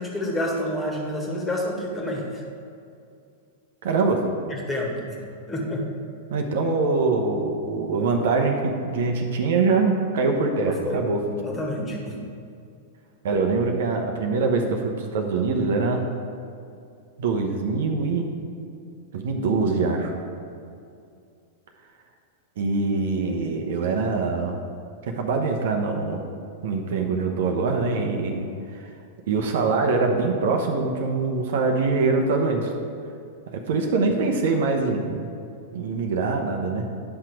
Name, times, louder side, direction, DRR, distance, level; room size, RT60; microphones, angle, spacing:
voice 1, 0.0-2.4 4.5-5.2 5.5-5.8 10.7-11.0 11.4-12.2, left 1 dB, 15° left, -1 dB, 1.7 m, -29 dB
voice 2, 3.8-4.2 6.3-11.2 13.2-16.0 17.2-18.3 19.1-20.2 22.6-24.6 25.1-26.2 26.6-28.5 28.7-28.8 29.3-32.7 33.7-35.4 35.7-36.9, right 4 dB, 60° right, 3 dB, 1.0 m, -23 dB
10.0 x 5.9 x 4.8 m, 2.5 s
figure-of-eight pair, 95°, 0 cm